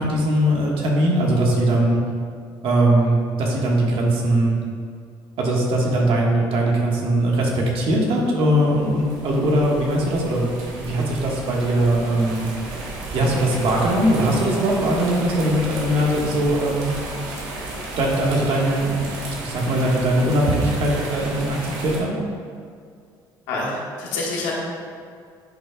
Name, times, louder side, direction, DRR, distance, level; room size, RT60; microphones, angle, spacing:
voice 1, 0.0-2.0 2.6-4.6 5.4-12.5 13.1-16.9 18.0-19.0 19.4-22.1, right 1 dB, 70° right, -2 dB, 1.5 m, -20 dB
sound 1, 8.2-22.0, right 2 dB, 90° right, 1.2 m, -34 dB
voice 2, 23.5-24.6, left 2 dB, 90° left, -4 dB, 1.6 m, -27 dB
10.5 x 5.5 x 2.3 m, 2.2 s
supercardioid pair, 70°, 10 cm